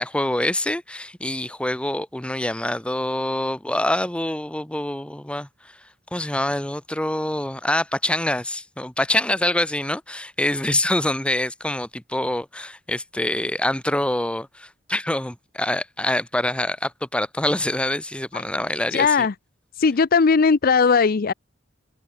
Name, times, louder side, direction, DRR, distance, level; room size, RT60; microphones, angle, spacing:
voice 1, 0.0-5.7 6.1-19.1, left 1 dB, 5° left, 0.8 m, -25 dB
voice 2, 18.9-19.3 19.8-21.3, left 5 dB, 50° left, 0.5 m, -18 dB
head